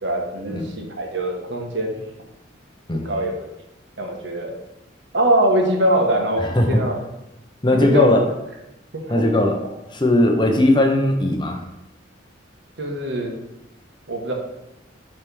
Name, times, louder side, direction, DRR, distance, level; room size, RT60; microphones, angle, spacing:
voice 1, 0.0-2.0 3.0-3.5 4.0-4.5 5.1-6.9 7.7-8.2 9.0-9.2 12.8-13.3 14.1-14.3, right 1 dB, 65° right, 1 dB, 1.3 m, -22 dB
voice 2, 6.4-6.8 7.6-8.3 9.1-9.6 9.9-11.6, left 1 dB, 25° left, 3 dB, 0.7 m, -18 dB
6.6 x 3.4 x 6.0 m, 0.89 s
head